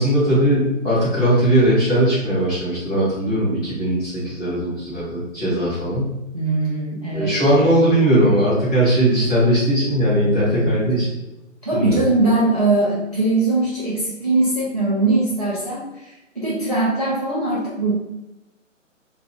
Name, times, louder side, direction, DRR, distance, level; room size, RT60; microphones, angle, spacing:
voice 1, 0.0-6.1 7.1-11.1 11.7-12.0, right 1 dB, 5° left, -14 dB, 0.9 m, -19 dB
voice 2, 6.3-7.3 10.5-10.8 11.6-17.9, right 2 dB, 30° right, -8 dB, 0.4 m, -21 dB
2.4 x 2.4 x 3.4 m, 0.96 s
figure-of-eight pair, 145°, 39 cm